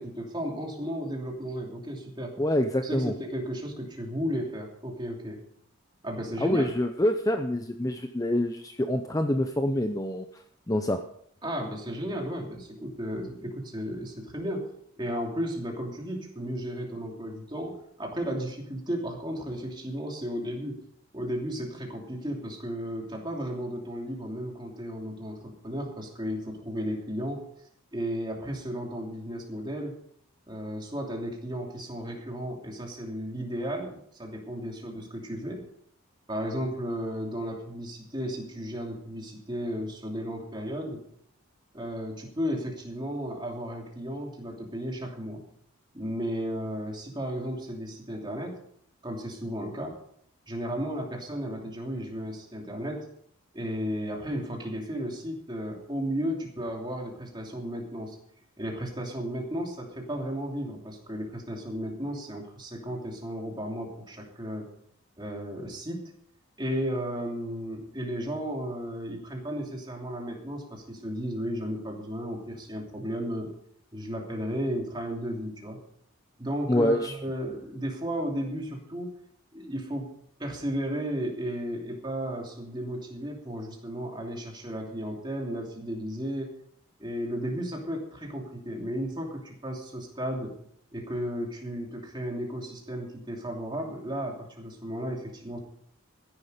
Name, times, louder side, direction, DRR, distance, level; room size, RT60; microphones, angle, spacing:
voice 1, 0.0-2.3 2.8-5.4 6.0-6.7 11.4-14.7 15.0-20.8 21.1-27.4 27.9-30.0 30.5-35.6 36.3-41.0 41.7-45.4 45.9-48.6 49.0-50.0 50.5-53.1 53.5-58.2 58.6-64.7 65.2-66.1 66.6-73.5 73.9-75.8 76.4-79.1 79.5-80.1 80.4-86.5 87.0-90.5 90.9-95.6, equal, 20° right, 0 dB, 2.9 m, -34 dB
voice 2, 2.4-3.1 6.4-10.4 10.7-11.0 76.7-77.2, left 1 dB, 15° left, 7 dB, 0.6 m, -26 dB
15.0 x 11.0 x 5.1 m, 0.68 s
head